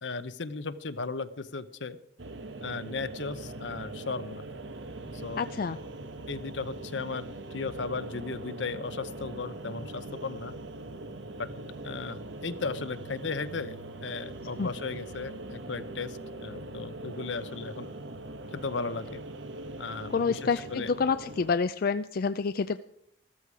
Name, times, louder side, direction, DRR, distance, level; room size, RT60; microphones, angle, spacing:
voice 1, 0.0-2.0 2.6-4.4 5.1-5.5 6.3-10.5 11.4-11.5 11.8-13.8 14.0-17.9 18.5-19.2 19.8-20.9, left 4 dB, 75° left, 13 dB, 0.9 m, -36 dB
sound 1, 2.2-21.5, right 2 dB, 85° right, 1.2 m, -42 dB
voice 2, 5.4-5.8 14.6-14.7 20.1-22.8, left 5 dB, 55° left, 12 dB, 0.4 m, -28 dB
14.5 x 13.5 x 4.9 m, 0.69 s
head